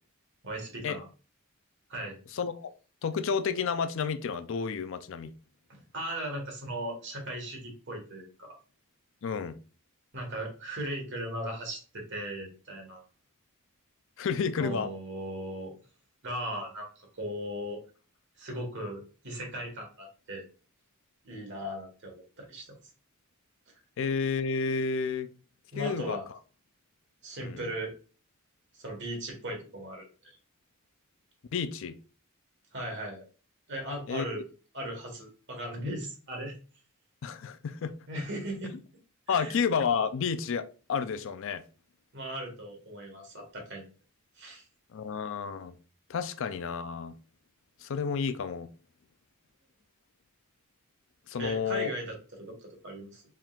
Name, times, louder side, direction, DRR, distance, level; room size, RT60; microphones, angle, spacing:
voice 1, 0.4-1.0 1.9-2.2 5.7-8.6 10.1-13.0 14.6-15.7 16.2-17.8 18.4-20.4 21.2-22.8 25.7-26.3 27.2-27.9 28.8-30.0 32.7-33.2 33.7-34.4 34.7-36.5 38.1-38.7 39.3-39.6 42.1-43.8 44.4-44.6 51.4-52.2 52.5-53.2, right 1 dB, 55° right, 1.5 m, -37 dB
voice 2, 2.3-2.7 3.0-5.3 9.2-9.6 14.2-14.9 24.0-25.3 25.8-26.2 27.4-27.7 31.5-32.0 34.1-34.4 37.2-37.9 38.7-38.8 39.3-41.6 44.9-45.7 46.1-47.1 47.8-48.7 51.3-51.9, left 6 dB, 65° left, 0.4 m, -31 dB
4.4 x 3.6 x 2.4 m
head